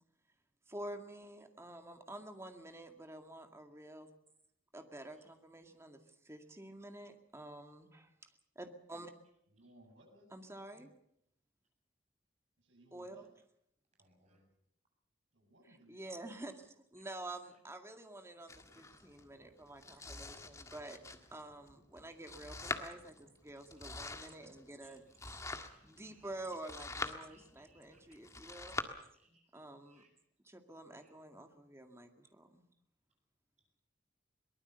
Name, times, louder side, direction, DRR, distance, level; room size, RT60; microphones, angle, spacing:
voice 1, 0.7-4.1 4.7-9.1 10.3-10.9 12.9-13.3 15.9-21.0 21.3-25.0 25.8-28.8 29.5-30.0 30.5-32.6, right 1 dB, 15° right, 5 dB, 2.0 m, -49 dB
voice 2, 9.5-10.4 12.6-13.3 15.3-16.0, right 1 dB, 80° right, 2 dB, 8.0 m, -62 dB
voice 3, 14.0-14.5 17.0-17.1 17.3-17.6 20.8-21.3 23.5-23.6 24.8-26.3 27.3-28.2 28.5-28.6 29.1-30.1 31.0-31.1 33.6-33.7, right 2 dB, 35° right, 3 dB, 7.7 m, -71 dB
Domestic sounds home sounds, 18.5-28.8, left 3 dB, 15° left, 1.6 m, -46 dB
23.0 x 19.5 x 6.8 m, 0.73 s
head